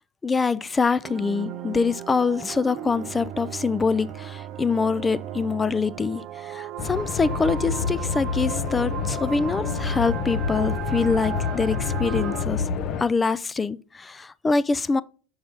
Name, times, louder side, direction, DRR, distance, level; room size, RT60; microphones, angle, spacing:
voice 1, 0.2-12.6 13.0-15.0, left 4 dB, 20° left, 0.4 m, -24 dB
sound 1, 1.0-12.5, right 11 dB, 50° right, 0.5 m, -37 dB
Bowed string instrument, 2.4-7.6, right 10 dB, 75° right, 0.8 m, -41 dB
sound 2, 6.8-13.0, left 6 dB, 50° left, 0.7 m, -28 dB
6.2 x 4.7 x 3.8 m
hypercardioid pair, 85°, 0 cm